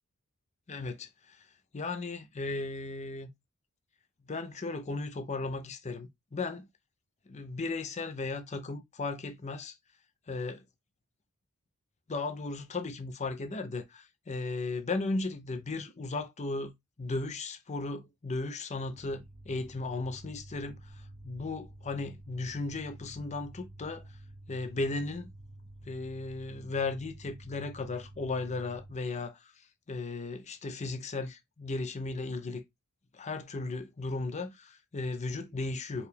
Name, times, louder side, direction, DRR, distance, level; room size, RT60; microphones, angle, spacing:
voice 1, 0.7-1.5 1.7-3.3 4.2-6.7 7.3-9.8 10.3-10.7 12.1-16.7 17.0-24.1 24.5-25.3 25.8-32.6 33.1-36.1, left 3 dB, 30° left, 0.5 m, -36 dB
sound 1, 18.9-28.9, right 1 dB, 70° right, 1.2 m, -50 dB
4.6 x 2.4 x 3.3 m
head